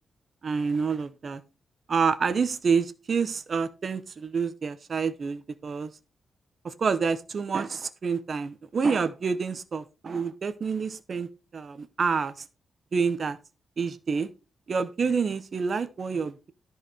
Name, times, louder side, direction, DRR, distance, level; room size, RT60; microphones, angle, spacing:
voice 1, 0.4-1.4 1.9-5.9 6.6-12.4 12.9-13.4 13.8-14.3 14.7-16.5, right 5 dB, 35° right, 12 dB, 0.8 m, -28 dB
13.5 x 4.9 x 4.9 m, 0.29 s
wide cardioid pair, 180°, 0 cm